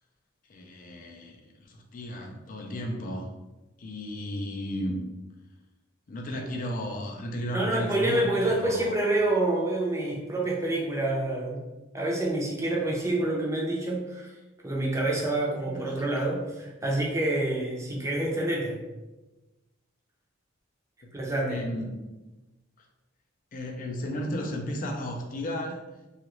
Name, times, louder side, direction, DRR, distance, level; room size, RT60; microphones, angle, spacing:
voice 1, 0.5-3.3 3.8-5.1 6.1-8.9 15.7-16.1 21.0-22.0 23.5-25.8, equal, 40° left, 1 dB, 0.4 m, -34 dB
voice 2, 7.5-11.6 11.9-14.3 14.6-18.8 21.1-21.6, right 2 dB, 15° right, -3 dB, 0.6 m, -27 dB
2.9 x 2.4 x 3.0 m, 1.1 s
head